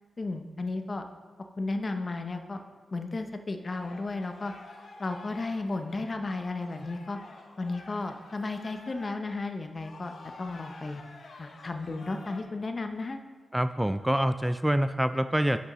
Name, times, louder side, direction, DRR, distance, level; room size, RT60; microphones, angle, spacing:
voice 1, 0.2-1.0 1.6-2.6 2.9-4.5 5.0-7.2 7.6-10.1 10.4-11.0 11.4-13.2, left 3 dB, 45° left, 6 dB, 0.7 m, -34 dB
sound 1, 3.7-12.4, left 3 dB, 70° left, 0.9 m, -50 dB
voice 2, 13.5-15.6, right 1 dB, 10° right, 11 dB, 0.3 m, -26 dB
9.8 x 6.2 x 3.1 m, 1.4 s
cardioid pair, 45°, 0 cm